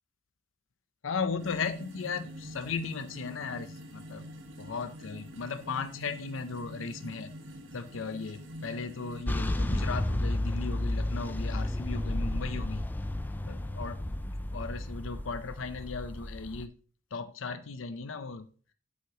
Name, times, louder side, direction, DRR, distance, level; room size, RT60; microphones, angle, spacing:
voice 1, 1.0-4.3 4.6-7.3 7.7-12.8 13.5-14.0 14.4-16.7 17.1-18.5, left 5 dB, 85° left, 0.6 m, -36 dB
sound 1, 1.4-9.3, equal, 80° right, 1.3 m, -46 dB
sound 2, 9.3-16.7, left 1 dB, 10° left, 0.4 m, -32 dB
8.1 x 8.0 x 2.9 m
head